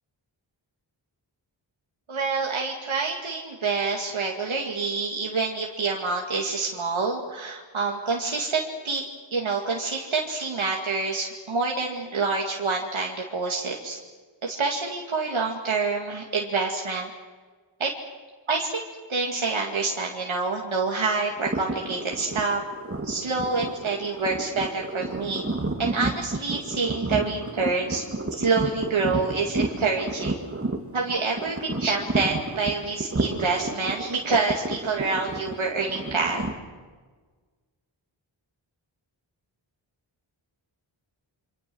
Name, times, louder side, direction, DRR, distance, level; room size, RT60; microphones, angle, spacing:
voice 1, 2.1-9.0 9.3-14.0 14.4-17.1 17.8-17.9 18.5-18.8 19.1-22.6 23.0-25.4 25.8-28.0 28.3-30.4 30.9-36.4, right 4 dB, 80° right, -1 dB, 2.5 m, -27 dB
sound 1, 21.4-36.5, right 2 dB, 30° right, 2.8 m, -31 dB
28.0 x 25.0 x 6.3 m, 1.4 s
wide cardioid pair, 60°, 47 cm